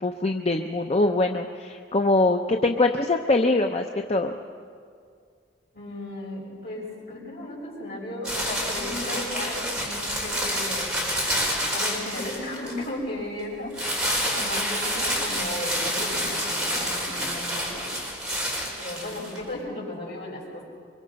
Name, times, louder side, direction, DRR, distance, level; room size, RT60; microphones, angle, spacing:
voice 1, 0.0-4.3, left 2 dB, 35° left, 4 dB, 0.7 m, -23 dB
voice 2, 5.7-10.9 11.7-18.0 18.8-20.7, left 1 dB, 60° left, -4 dB, 6.1 m, -35 dB
sound 1, 8.2-12.8 13.7-19.4, equal, 5° right, 4.8 m, -28 dB
24.0 x 23.0 x 5.3 m, 2.2 s
head